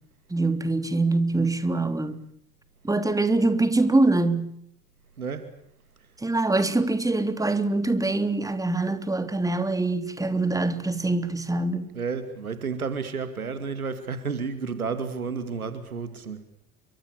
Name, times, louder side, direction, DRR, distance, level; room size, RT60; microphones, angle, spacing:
voice 1, 0.3-2.2 2.8-4.5 6.2-11.9, right 2 dB, 10° right, 3.2 m, -24 dB
voice 2, 11.9-16.4, right 5 dB, 80° right, 2.7 m, -31 dB
30.0 x 25.0 x 7.0 m
figure-of-eight pair, 65°, 43 cm